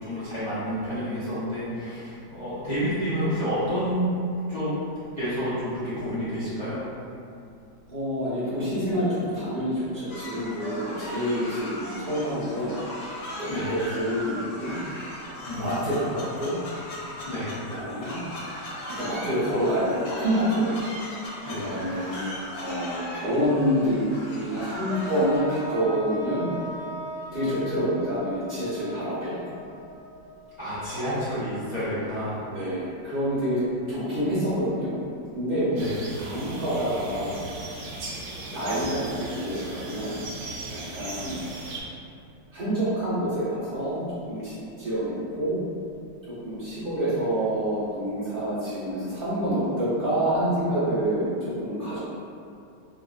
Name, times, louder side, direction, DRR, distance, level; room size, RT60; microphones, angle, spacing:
voice 1, 0.0-4.1 4.5-4.8 5.2-6.8 13.5-13.7 15.4-15.6 17.2-17.5 21.4-21.7 30.6-32.5 35.7-35.9, equal, 55° left, -15 dB, 0.4 m, -29 dB
voice 2, 7.9-12.8 13.4-14.7 15.6-16.5 17.7-18.2 18.9-20.8 21.4-24.0 24.3-26.5 27.3-29.6 30.9-31.4 32.5-33.6 33.9-34.9 35.3-35.7 36.2-37.4 38.5-40.2 40.7-41.4 42.5-45.6 46.4-52.0, equal, 45° right, -12 dB, 0.7 m, -27 dB
sound 1, 10.1-25.4, left 1 dB, 85° left, 1.3 m, -38 dB
sound 2, 24.9-30.9, equal, 10° left, 0.7 m, -38 dB
sound 3, 35.8-41.8, right 2 dB, 80° right, 1.2 m, -37 dB
2.8 x 2.6 x 2.4 m, 2.5 s
omnidirectional pair, 1.8 m